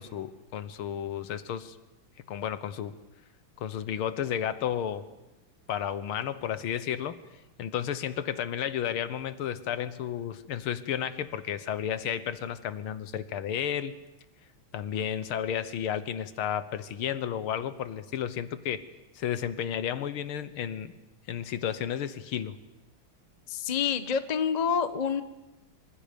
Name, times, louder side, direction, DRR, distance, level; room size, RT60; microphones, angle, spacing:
voice 1, 0.0-1.8 2.3-3.0 3.6-5.0 5.7-7.2 7.6-13.9 14.7-18.8 19.2-20.9 21.3-22.6, left 9 dB, 80° left, 13 dB, 1.9 m, -32 dB
voice 2, 23.5-25.2, left 7 dB, 35° left, 10 dB, 0.7 m, -27 dB
26.5 x 26.0 x 5.2 m, 1.0 s
omnidirectional pair, 2.3 m